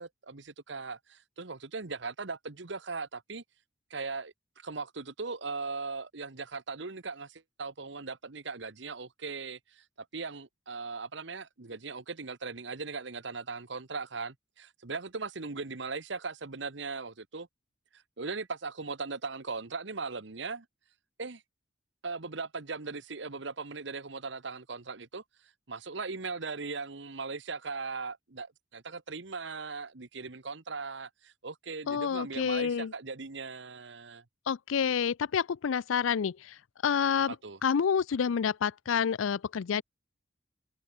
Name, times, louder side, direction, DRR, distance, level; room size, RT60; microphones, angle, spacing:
voice 1, 0.0-3.4 3.9-17.5 17.9-20.7 21.2-21.4 22.0-25.2 25.7-34.2 37.3-37.6, right 4 dB, 65° right, 1.2 m, -39 dB
voice 2, 31.9-32.9 34.5-37.4 37.6-39.8, left 7 dB, 90° left, 0.4 m, -28 dB
head